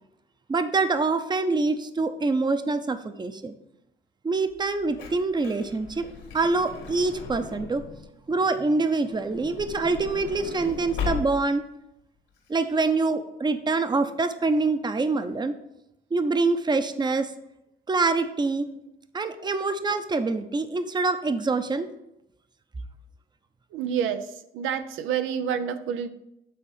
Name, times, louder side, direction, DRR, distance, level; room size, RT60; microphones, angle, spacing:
voice 1, 0.5-3.5 4.2-7.9 8.3-11.6 12.5-15.5 16.1-17.3 17.9-18.7 19.1-21.9, right 3 dB, 20° right, 10 dB, 0.6 m, -25 dB
Truck / Door, 4.6-8.1 9.1-11.7 12.4-12.5 12.6-12.8, left 6 dB, 80° left, 2.1 m, -37 dB
voice 2, 23.7-26.1, right 8 dB, 90° right, 9 dB, 0.6 m, -29 dB
8.5 x 4.0 x 5.6 m, 0.84 s
cardioid pair, 90°, 20 cm